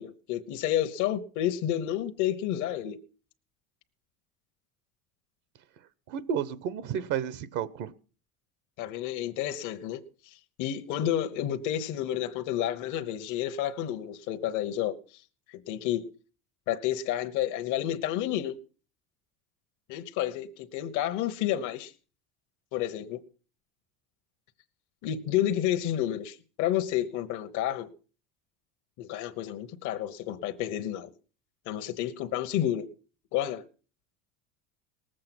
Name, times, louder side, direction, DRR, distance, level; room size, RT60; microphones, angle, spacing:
voice 1, 0.0-3.0 8.8-15.2 15.5-16.1 16.7-18.5 19.9-21.9 22.7-23.2 25.0-27.9 29.0-31.1 31.7-32.9 33.3-33.6, left 11 dB, 60° left, 1.1 m, -30 dB
voice 2, 6.1-7.9, right 8 dB, 60° right, 0.9 m, -32 dB
19.0 x 7.7 x 6.0 m
cardioid pair, 140°, 34 cm